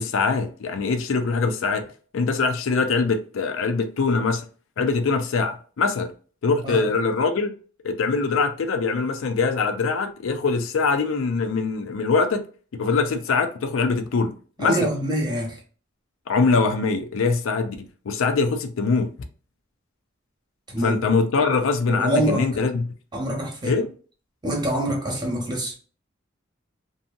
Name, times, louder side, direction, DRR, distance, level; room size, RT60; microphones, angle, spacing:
voice 1, 0.0-1.8 2.1-4.4 4.8-6.1 6.4-7.5 7.8-12.4 12.7-14.3 14.6-14.9 16.3-19.1 20.8-22.9 23.6-23.9, left 4 dB, 70° left, 0.4 m, -23 dB
voice 2, 14.6-15.6 20.7-21.0 21.9-22.5 23.1-23.8 24.4-25.7, right 1 dB, 20° right, 1.0 m, -25 dB
2.7 x 2.6 x 2.4 m
head